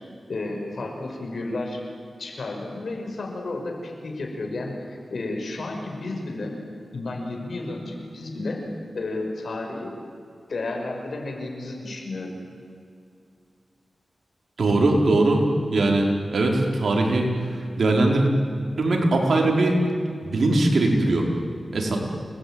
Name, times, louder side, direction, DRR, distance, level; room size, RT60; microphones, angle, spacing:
voice 1, 0.3-1.8 2.2-6.6 6.9-9.9 10.5-12.4, left 2 dB, 75° left, 2 dB, 5.7 m, -32 dB
voice 2, 14.6-15.4 15.7-17.3 17.8-18.2 18.8-19.8 20.2-21.3 21.7-22.0, right 2 dB, 75° right, 1 dB, 5.0 m, -20 dB
29.0 x 20.5 x 9.1 m, 2.4 s
cardioid pair, 60°, 0 cm